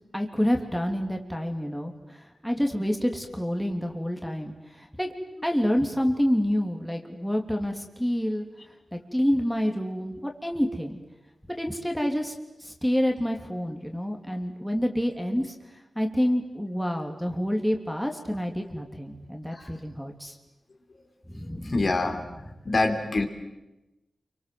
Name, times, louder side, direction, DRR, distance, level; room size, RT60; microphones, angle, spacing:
voice 1, 0.1-5.1 5.4-8.4 8.9-11.0 11.5-12.3 12.6-15.5 15.9-20.4 21.3-21.9, equal, ahead, 2 dB, 3.2 m, -28 dB
voice 2, 21.6-22.2 22.6-23.3, left 2 dB, 50° left, 4 dB, 3.6 m, -25 dB
29.0 x 25.0 x 7.8 m, 1.0 s
wide cardioid pair, 90°, 0 cm